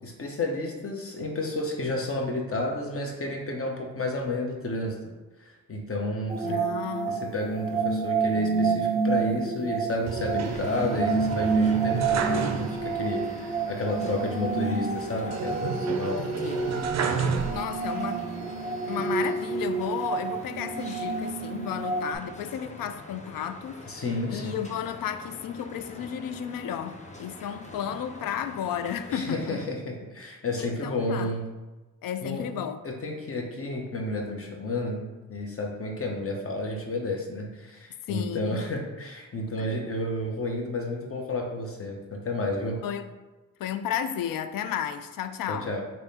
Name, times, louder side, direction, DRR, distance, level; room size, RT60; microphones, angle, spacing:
voice 1, 0.0-5.1 5.4-6.6 7.1-16.2 23.9-24.6 29.1-31.4 32.2-32.5 32.8-42.8 45.5-45.8, left 2 dB, 35° left, 1.0 m, -31 dB
sound 1, 6.3-22.2, right 5 dB, 15° right, 1.0 m, -29 dB
voice 2, 6.4-7.3 16.0-16.6 17.5-18.3 18.9-24.0 24.3-29.6 30.6-31.3 32.0-32.8 38.1-38.7 39.6-39.7 42.8-43.1 43.6-45.7, left 9 dB, 55° left, 0.5 m, -33 dB
sound 2, 10.1-13.1 13.4-13.5 15.3-18.0 18.6-19.4, right 5 dB, 40° right, 0.5 m, -32 dB
sound 3, 10.4-29.7, left 1 dB, 15° left, 0.6 m, -44 dB
3.2 x 2.9 x 4.2 m
hypercardioid pair, 45°, 42 cm